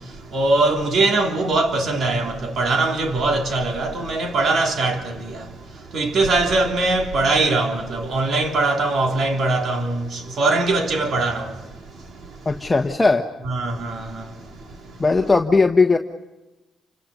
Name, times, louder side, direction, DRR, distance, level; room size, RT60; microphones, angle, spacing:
voice 1, 0.3-5.2 5.9-10.1 10.4-11.5 13.4-14.2, right 2 dB, 60° right, 3.4 m, -21 dB
voice 2, 12.4-13.3 15.0-16.0, left 3 dB, 20° left, 1.3 m, -17 dB
29.0 x 26.0 x 5.4 m
cardioid pair, 90°, 0 cm